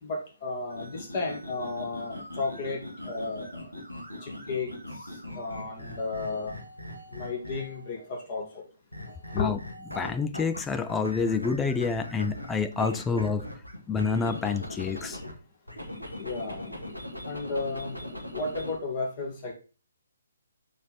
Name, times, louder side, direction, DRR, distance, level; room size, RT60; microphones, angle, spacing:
voice 1, 0.0-2.8 3.0-3.5 4.2-4.7 5.4-6.5 7.1-8.6 9.4-9.5 16.2-16.9 17.2-19.5, left 3 dB, 30° left, 2.5 m, -33 dB
sound 1, 0.7-7.9 8.9-10.6 10.9-15.3 15.7-18.8, left 1 dB, 85° left, 2.2 m, -40 dB
voice 2, 9.9-13.5 13.9-15.2, left 5 dB, 10° left, 0.4 m, -28 dB
6.4 x 5.0 x 4.3 m
figure-of-eight pair, 135°, 0 cm